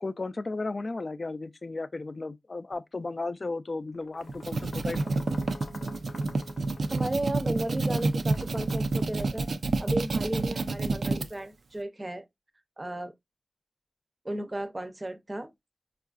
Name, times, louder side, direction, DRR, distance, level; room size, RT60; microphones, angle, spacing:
voice 1, 0.0-5.3, left 3 dB, 45° left, 0.3 m, -35 dB
sound 1, 3.9-9.7, left 4 dB, 80° left, 0.6 m, -48 dB
sound 2, 4.2-11.3, right 3 dB, 80° right, 0.4 m, -29 dB
voice 2, 6.9-9.5 9.8-12.2 12.8-13.1 14.2-15.5, right 1 dB, 25° right, 0.6 m, -34 dB
4.5 x 2.4 x 2.3 m
wide cardioid pair, 90°, 0 cm